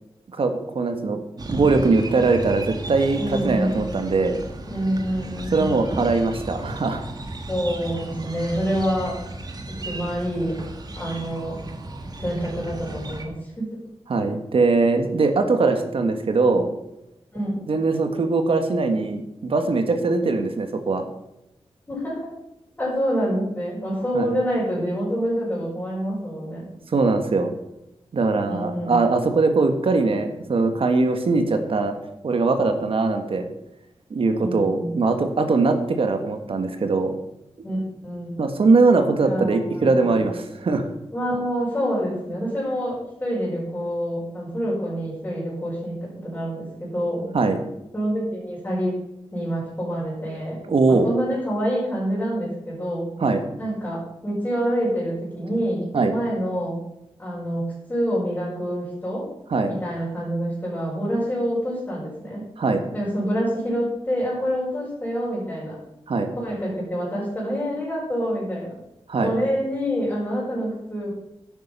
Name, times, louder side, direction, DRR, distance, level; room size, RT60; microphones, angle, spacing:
voice 1, 0.3-1.2 1.5-4.4 5.5-7.0 14.1-16.7 17.7-21.1 24.1-24.3 26.9-27.5 28.1-31.9 32.2-33.4 34.1-37.2 38.4-40.9 47.3-47.6 50.7-51.1 53.2-53.4 55.9-56.1 59.5-59.7 62.6-62.8 66.1-66.3 69.1-69.3, right 3 dB, 60° right, 6 dB, 1.7 m, -21 dB
sound 1, 1.4-13.3, right 1 dB, 40° right, 1.5 m, -34 dB
voice 2, 3.2-3.8 4.7-5.7 7.5-9.2 9.7-10.6 10.9-11.6 12.2-13.7 17.3-17.5 21.9-22.3 22.8-26.7 28.4-29.0 34.3-34.9 37.6-38.4 39.2-40.3 41.1-47.3 47.9-49.0 49.3-50.6 50.9-53.1 53.6-56.8 57.2-59.3 59.7-62.5 62.9-65.8 66.4-68.8 69.2-71.1, equal, 15° left, -9 dB, 5.6 m, -27 dB
11.0 x 9.1 x 5.6 m, 0.85 s
wide cardioid pair, 155°, 10 cm